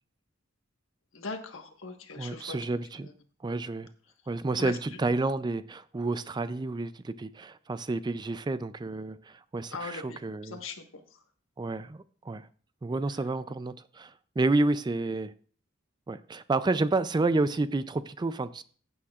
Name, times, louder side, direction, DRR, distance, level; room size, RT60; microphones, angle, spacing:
voice 1, 1.1-2.6 3.0-3.1 4.6-4.8 9.7-11.0, left 4 dB, 75° left, 1.4 m, -40 dB
voice 2, 2.2-3.1 3.4-3.9 4.3-10.6 11.6-12.5 12.8-15.3 16.1-18.6, right 3 dB, 20° right, 0.4 m, -30 dB
15.5 x 8.6 x 2.4 m
head